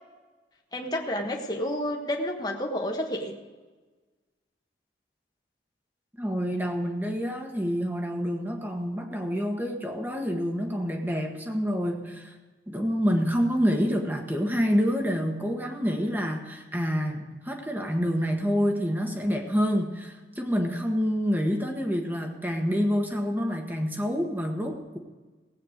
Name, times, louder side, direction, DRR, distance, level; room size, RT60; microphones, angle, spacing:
voice 1, 0.7-3.4, left 1 dB, 20° left, 1 dB, 1.4 m, -30 dB
voice 2, 6.2-12.3 12.7-25.0, equal, 10° right, 2 dB, 1.5 m, -27 dB
17.5 x 9.0 x 5.1 m, 1.3 s
head